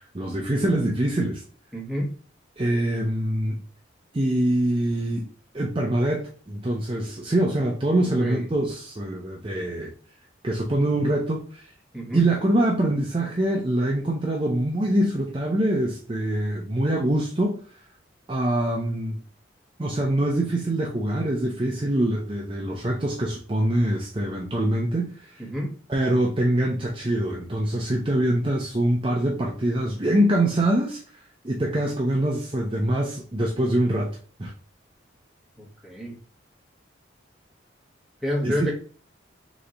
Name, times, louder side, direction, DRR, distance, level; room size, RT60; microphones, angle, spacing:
voice 1, 0.1-1.4 2.6-3.6 4.1-5.3 5.5-9.9 10.4-11.7 12.1-17.6 18.3-19.2 19.8-25.4 25.9-31.0 31.4-34.5 38.4-38.7, right 1 dB, 25° right, -1 dB, 0.5 m, -24 dB
voice 2, 1.7-2.1 8.1-8.5 11.9-12.2 25.4-25.7 35.6-36.1 38.2-38.7, equal, ahead, -3 dB, 1.3 m, -29 dB
3.3 x 3.1 x 3.8 m, 0.40 s
head